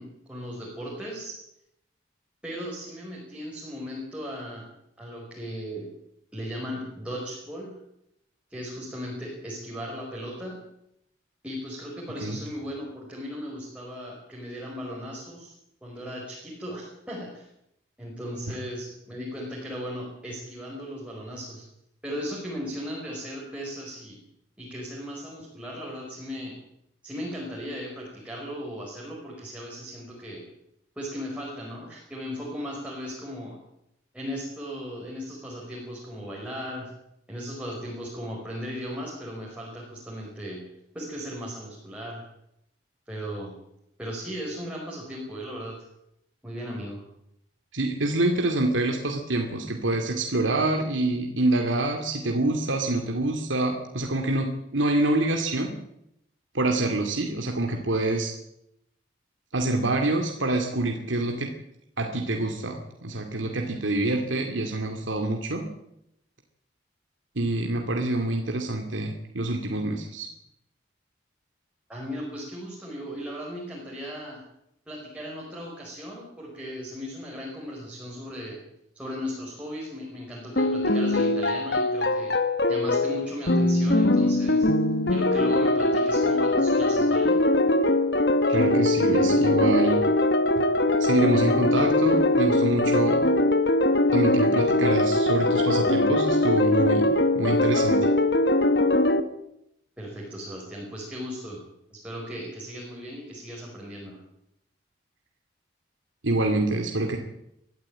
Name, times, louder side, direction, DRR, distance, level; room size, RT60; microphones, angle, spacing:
voice 1, 0.0-1.4 2.4-4.7 5.0-5.9 6.3-7.8 8.5-10.6 11.4-15.5 15.8-17.5 18.0-21.6 22.0-24.2 24.6-26.5 27.0-30.4 30.9-33.6 34.1-36.9 37.3-40.6 40.9-42.2 43.0-43.5 44.0-45.8 46.4-47.0 71.9-74.4 74.9-78.6 78.9-82.3 82.7-84.7 85.1-87.4 100.0-101.6 101.9-104.2, equal, 5° right, -4 dB, 5.1 m, -37 dB
voice 2, 47.7-55.7 56.5-58.3 59.5-61.5 62.0-65.7 67.4-70.3 88.5-90.0 91.0-93.2 94.1-97.1 97.3-98.1 106.2-107.2, right 2 dB, 90° right, 2 dB, 2.4 m, -26 dB
sound 1, 80.6-99.2, left 2 dB, 60° left, 1.4 m, -22 dB
22.5 x 14.0 x 8.8 m, 0.79 s
head